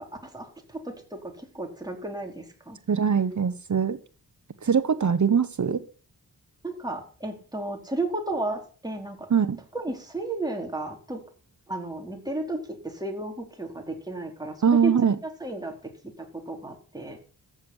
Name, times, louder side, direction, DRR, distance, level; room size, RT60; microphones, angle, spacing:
voice 1, 0.0-2.8 6.6-9.3 9.7-11.2 11.7-14.9 15.2-17.2, right 2 dB, 10° right, 1 dB, 4.4 m, -33 dB
voice 2, 2.9-4.0 4.6-5.8 9.3-9.6 14.6-15.2, right 7 dB, 50° right, 11 dB, 1.1 m, -22 dB
14.5 x 7.2 x 9.9 m, 0.41 s
wide cardioid pair, 100°, 38 cm